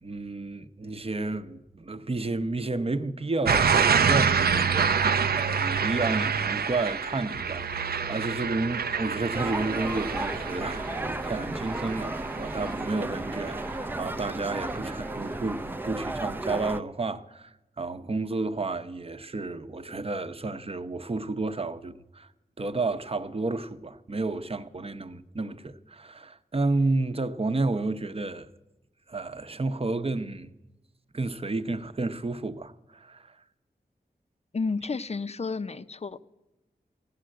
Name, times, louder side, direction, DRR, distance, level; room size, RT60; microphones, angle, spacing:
voice 1, 0.0-22.3 22.6-28.5 29.1-30.5 31.1-33.4, right 3 dB, 35° right, 0.8 m, -31 dB
sound 1, 3.5-14.3 14.7-15.1, right 6 dB, 65° right, 0.6 m, -27 dB
sound 2, 9.3-16.8, right 1 dB, 10° right, 0.5 m, -34 dB
voice 2, 34.5-36.2, left 4 dB, 40° left, 0.6 m, -31 dB
15.0 x 10.0 x 7.7 m
cardioid pair, 40°, 17 cm